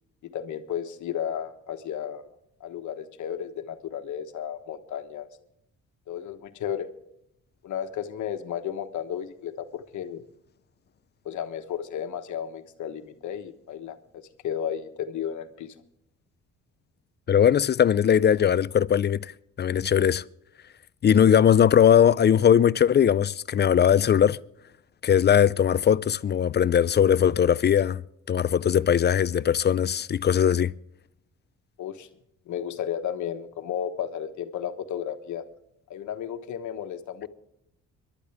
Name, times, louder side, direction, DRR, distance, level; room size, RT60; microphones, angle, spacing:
voice 1, 0.3-2.2 2.6-5.3 6.1-6.9 7.6-10.2 11.2-15.7 31.8-32.1 32.5-35.4 35.9-37.3, left 9 dB, 75° left, 1.3 m, -33 dB
voice 2, 17.3-19.3 19.6-20.2 21.0-24.4 25.0-28.0 28.3-30.7, left 8 dB, 35° left, 0.4 m, -20 dB
24.0 x 11.5 x 3.5 m
cardioid pair, 90°, 30 cm